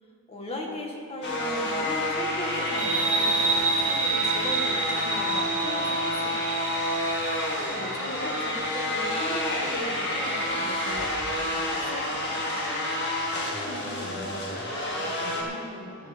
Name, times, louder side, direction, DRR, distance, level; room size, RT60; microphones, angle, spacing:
voice 1, 0.3-6.7 7.7-12.4, left 1 dB, 25° left, 0 dB, 1.7 m, -38 dB
sound 1, 1.2-15.4, left 1 dB, 50° left, 2.0 m, -29 dB
sound 2, 2.8-10.0, right 4 dB, 35° right, 2.0 m, -29 dB
voice 2, 13.4-16.1, left 1 dB, 5° right, -11 dB, 3.8 m, -42 dB
13.5 x 7.2 x 7.1 m, 2.3 s
head